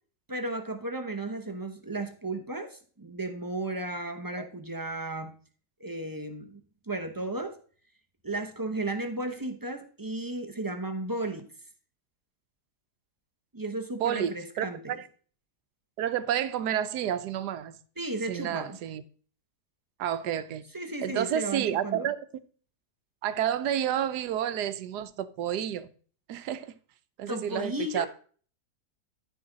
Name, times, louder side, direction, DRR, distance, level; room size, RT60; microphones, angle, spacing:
voice 1, 0.3-5.3 5.8-6.6 6.9-7.6 8.2-11.5 13.5-15.0 18.0-18.8 20.7-22.1 27.3-28.1, right 2 dB, 20° right, 0.7 m, -34 dB
voice 2, 14.0-15.1 16.0-17.7 18.3-19.0 20.0-20.7 21.0-22.2 23.2-25.9 26.3-26.7 27.2-28.1, right 10 dB, 80° right, 1.3 m, -30 dB
13.5 x 5.2 x 3.9 m
omnidirectional pair, 1.7 m